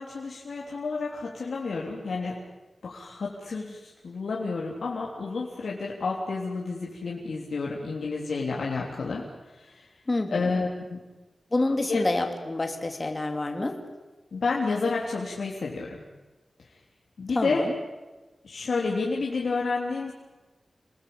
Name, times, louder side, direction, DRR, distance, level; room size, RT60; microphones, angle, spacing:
voice 1, 0.0-2.4 2.8-9.9 10.3-11.0 11.8-12.1 14.3-16.0 16.7-16.8 17.2-17.7 18.4-20.1, left 4 dB, 85° left, -3 dB, 3.4 m, -30 dB
voice 2, 10.1-10.5 11.5-13.8 17.3-17.7, left 2 dB, 30° left, 5 dB, 2.9 m, -27 dB
29.0 x 20.5 x 8.8 m, 1.2 s
wide cardioid pair, 110°, 0 cm